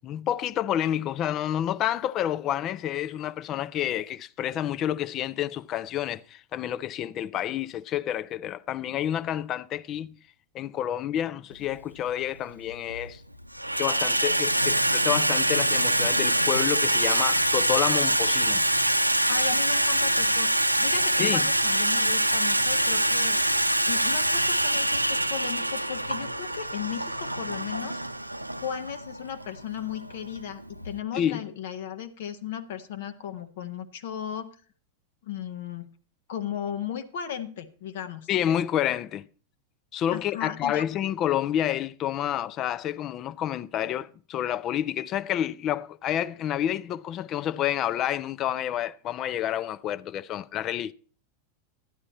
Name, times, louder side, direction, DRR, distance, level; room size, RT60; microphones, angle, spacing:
voice 1, 0.0-10.2 10.5-13.2 13.8-18.6 21.2-21.5 31.1-31.4 38.3-39.3 39.9-50.9, left 11 dB, 35° left, 0.5 m, -29 dB
Water tap faucet / Sink (filling or washing), 11.6-11.7 12.7-13.1 13.4-31.0, right 1 dB, 85° right, 0.6 m, -25 dB
voice 2, 19.3-20.5 20.8-23.4 23.8-28.0 28.6-34.5 35.2-35.9 36.3-38.3 40.1-40.9, left 9 dB, 55° left, 1.0 m, -36 dB
12.0 x 11.0 x 4.2 m
figure-of-eight pair, 90°, 0 cm